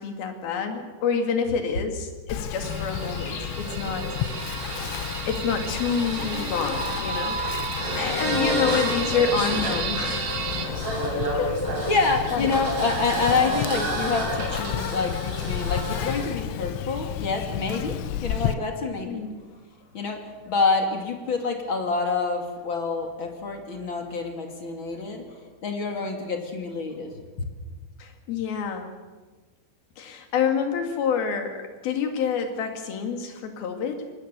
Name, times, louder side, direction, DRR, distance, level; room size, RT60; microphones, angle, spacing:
voice 1, 0.0-4.1 5.2-7.4 8.0-10.6 11.1-11.5 12.3-12.5 19.1-19.4 28.0-28.9 30.0-34.1, left 6 dB, 55° left, 5 dB, 3.8 m, -28 dB
Insect, 2.3-18.5, left 11 dB, 90° left, 3.4 m, -32 dB
sound 1, 2.6-16.3, right 1 dB, 30° right, 8.1 m, -31 dB
sound 2, 2.6-10.7, right 5 dB, 55° right, 3.5 m, -34 dB
voice 2, 11.9-19.2 19.9-27.1, left 4 dB, 35° left, 4 dB, 2.2 m, -27 dB
25.0 x 20.0 x 6.9 m, 1.3 s
omnidirectional pair, 5.4 m